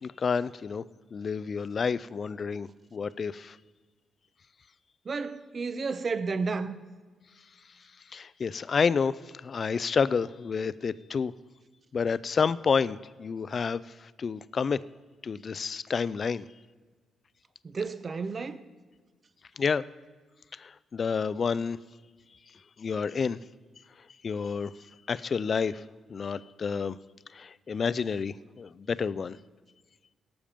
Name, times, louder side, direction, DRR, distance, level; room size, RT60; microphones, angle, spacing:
voice 1, 0.0-0.8 1.1-3.5 8.1-9.1 9.4-11.3 11.9-13.8 14.2-14.8 15.2-16.5 19.6-19.8 20.6-21.8 22.8-23.4 24.2-24.7 25.1-25.8 26.1-27.0 27.3-29.4, left 5 dB, 50° left, 0.5 m, -29 dB
voice 2, 5.0-6.8 17.6-18.6, right 4 dB, 45° right, 1.0 m, -32 dB
17.5 x 7.2 x 5.2 m
supercardioid pair, 55°, 0 cm